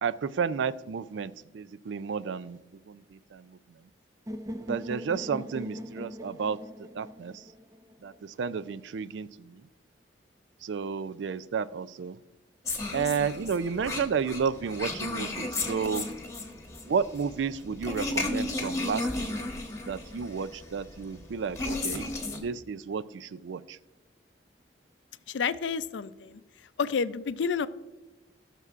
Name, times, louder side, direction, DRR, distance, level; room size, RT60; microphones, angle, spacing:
voice 1, 0.0-2.6 2.9-3.6 4.7-6.6 6.9-7.4 8.0-9.6 10.6-12.2 12.9-16.1 16.9-19.4 19.8-22.1 22.4-23.8, right 6 dB, 85° right, 15 dB, 0.4 m, -32 dB
sound 1, 4.3-8.2, equal, 20° right, 0.5 m, -40 dB
sound 2, 12.6-22.4, left 2 dB, 15° left, 1.3 m, -34 dB
voice 2, 25.3-26.4 26.8-27.7, left 6 dB, 90° left, 14 dB, 0.4 m, -29 dB
17.0 x 6.7 x 2.5 m, 1.1 s
head